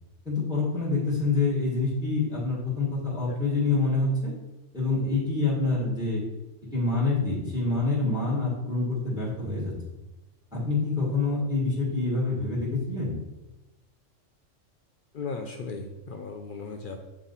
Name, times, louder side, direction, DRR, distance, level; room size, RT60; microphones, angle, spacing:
voice 1, 0.3-4.3 4.7-6.2 6.7-9.7 10.5-13.2, left 3 dB, 5° right, -5 dB, 1.8 m, -26 dB
voice 2, 15.1-17.0, left 4 dB, 55° left, 4 dB, 0.6 m, -37 dB
7.4 x 3.7 x 4.1 m, 1.0 s
omnidirectional pair, 1.3 m